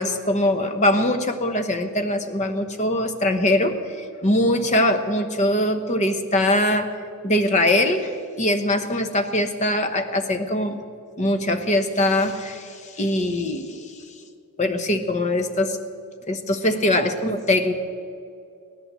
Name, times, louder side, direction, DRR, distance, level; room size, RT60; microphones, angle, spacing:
voice 1, 0.0-7.0 7.2-10.8 11.2-13.9 14.6-15.8 16.3-17.7, left 1 dB, 30° left, 7 dB, 1.1 m, -22 dB
17.0 x 11.0 x 7.5 m, 2.5 s
head